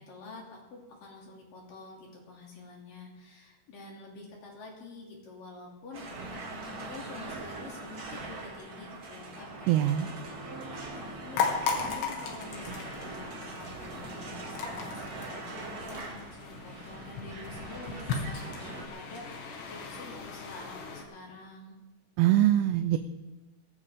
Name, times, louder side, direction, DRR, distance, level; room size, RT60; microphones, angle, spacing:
voice 1, 0.0-10.1 11.0-21.8, left 3 dB, 55° left, -2 dB, 4.2 m, -48 dB
sound 1, 5.9-18.9, right 2 dB, 70° right, 0.9 m, -42 dB
voice 2, 9.7-10.1 22.2-23.0, right 13 dB, 85° right, 9 dB, 2.8 m, -23 dB
Japan Matsudo Stepping on Small Manhole Cover, 11.3-21.0, left 5 dB, 80° left, 4.0 m, -37 dB
19.0 x 15.0 x 3.7 m, 1.2 s
omnidirectional pair, 4.8 m